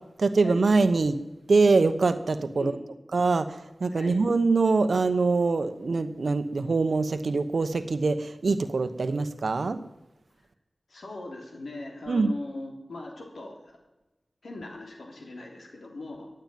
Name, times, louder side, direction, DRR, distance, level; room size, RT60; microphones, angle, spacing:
voice 1, 0.2-1.2 1.5-2.7 3.1-9.8 12.1-12.3, right 3 dB, 80° right, 10 dB, 1.0 m, -24 dB
voice 2, 2.5-2.8 3.9-4.2 10.9-13.8 14.4-16.3, left 2 dB, 85° left, 1 dB, 3.2 m, -40 dB
15.0 x 9.0 x 9.2 m, 1.0 s
wide cardioid pair, 65°, 0 cm